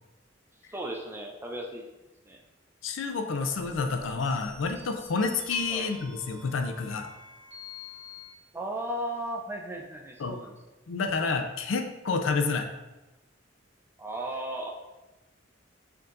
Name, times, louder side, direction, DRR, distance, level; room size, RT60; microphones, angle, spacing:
voice 1, 0.7-1.9 2.2-2.4 5.7-5.9 8.5-10.6 14.0-14.7, right 1 dB, 10° right, 0 dB, 0.4 m, -35 dB
voice 2, 2.8-7.1 10.2-10.4 10.9-12.7, left 4 dB, 80° left, 5 dB, 0.5 m, -29 dB
sound 1, 3.4-8.3, left 3 dB, 35° right, 1.0 m, -48 dB
4.5 x 4.0 x 2.5 m, 1.0 s
head